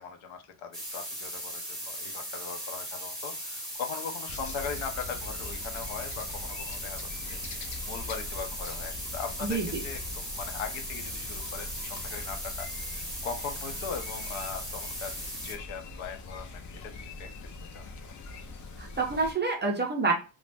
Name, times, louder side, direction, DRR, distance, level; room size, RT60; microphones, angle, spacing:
voice 1, 0.0-17.9, left 6 dB, 75° left, 5 dB, 0.7 m, -40 dB
sound 1, 0.7-15.5, equal, ahead, 0.8 m, -38 dB
sound 2, 4.3-19.3, left 3 dB, 40° left, 0.4 m, -42 dB
voice 2, 9.4-9.8 18.8-20.1, right 4 dB, 25° right, 0 dB, 0.3 m, -28 dB
2.5 x 2.1 x 3.2 m, 0.31 s
cardioid pair, 165°, 47 cm